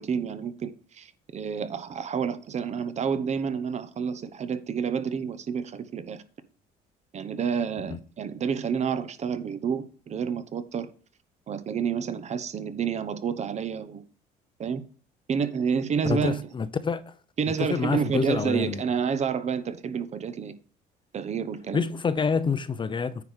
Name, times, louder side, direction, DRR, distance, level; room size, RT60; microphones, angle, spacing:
voice 1, 0.0-6.2 7.1-10.9 11.5-14.0 14.6-14.8 15.3-16.4 17.4-20.6 21.1-21.9, right 6 dB, 40° right, 0.9 m, -29 dB
voice 2, 16.0-17.1 17.6-18.8 21.7-23.2, left 5 dB, 30° left, 0.7 m, -27 dB
9.5 x 5.0 x 4.9 m
cardioid pair, 110°, 17 cm